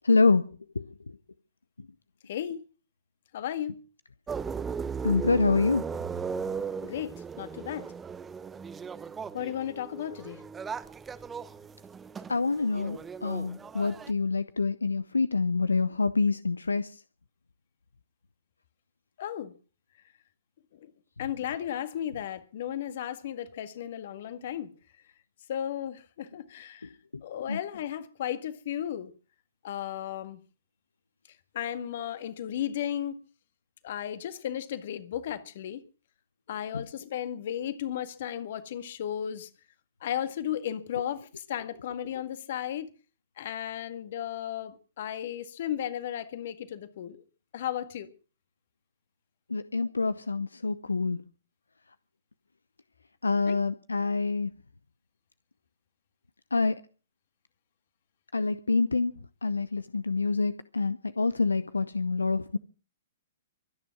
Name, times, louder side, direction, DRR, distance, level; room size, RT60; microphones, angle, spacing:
voice 1, 0.0-0.4 0.7-0.8 5.0-5.9 12.3-16.9 27.5-27.6 36.7-36.8 49.5-51.2 53.2-54.5 56.5-56.8 58.3-59.1 59.4-62.6, left 4 dB, 80° left, 0.8 m, -26 dB
voice 2, 2.3-2.6 3.3-3.8 6.8-7.9 9.3-10.4 19.2-19.5 20.8-20.9 21.2-24.7 25.5-26.9 27.2-29.1 29.6-30.4 31.5-33.2 33.8-35.8 36.5-39.5 40.0-42.9 43.4-47.2 47.5-48.1 53.5-53.6, left 10 dB, 50° left, 1.9 m, -34 dB
sound 1, 4.3-14.1, right 6 dB, 15° right, 0.9 m, -37 dB
23.5 x 9.8 x 6.0 m
figure-of-eight pair, 115°, 0 cm